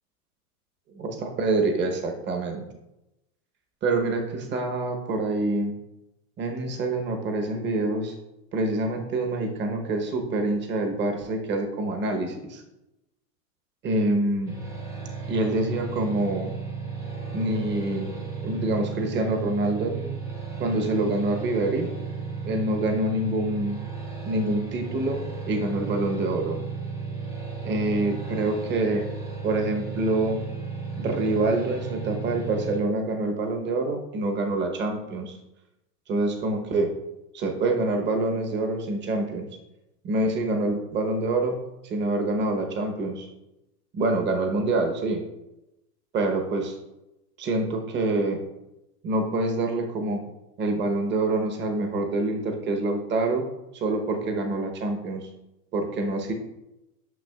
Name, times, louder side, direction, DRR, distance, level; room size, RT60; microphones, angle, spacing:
voice 1, 1.0-2.6 3.8-5.7 6.4-8.1 8.5-12.6 13.8-14.5 15.3-16.5 17.3-18.1 18.4-20.2 20.6-21.9 22.4-23.8 24.2-26.6 27.6-29.1 29.4-30.4 31.0-35.4 36.1-36.9 37.3-39.5 40.0-41.6 41.8-43.3 43.9-45.2 46.1-46.8 47.4-48.4 49.0-50.2 50.6-53.5 53.7-55.3 55.7-56.3, right 2 dB, 25° right, 4 dB, 0.9 m, -26 dB
sound 1, 14.5-32.8, right 5 dB, 5° right, 0.3 m, -34 dB
9.4 x 5.9 x 2.3 m, 0.95 s
hypercardioid pair, 125°, 48 cm